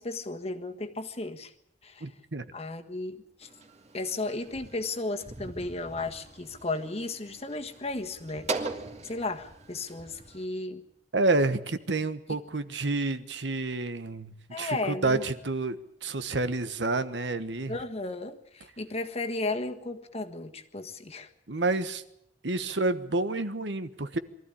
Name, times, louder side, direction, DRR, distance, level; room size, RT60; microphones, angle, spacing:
voice 1, 0.0-1.5 1.8-2.1 2.5-3.5 3.9-8.5 9.0-10.8 14.5-15.3 17.7-21.3, left 2 dB, 35° left, 5 dB, 1.6 m, -34 dB
voice 2, 2.0-2.4 11.1-15.8 16.0-17.8 21.5-22.0 22.4-24.2, right 2 dB, 80° right, 11 dB, 1.3 m, -29 dB
sound 1, 3.4-10.4, right 3 dB, 40° right, 2.3 m, -41 dB
23.0 x 14.0 x 9.9 m, 0.79 s
head